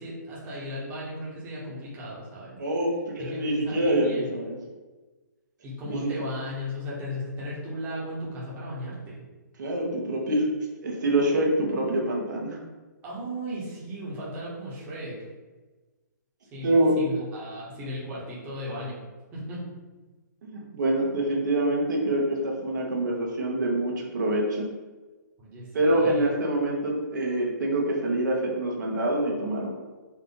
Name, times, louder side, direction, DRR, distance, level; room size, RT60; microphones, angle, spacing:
voice 1, 0.0-2.6 3.2-4.4 5.6-9.2 13.0-15.2 16.5-19.0 19.3-19.6 25.4-26.3, left 1 dB, 15° right, -7 dB, 1.1 m, -36 dB
voice 2, 2.6-4.6 5.9-6.1 9.6-10.5 10.8-12.6 16.6-16.9 20.4-24.6 25.7-29.7, right 1 dB, 70° right, -2 dB, 1.2 m, -25 dB
4.2 x 2.5 x 3.8 m, 1.3 s
hypercardioid pair, 155°, 10 cm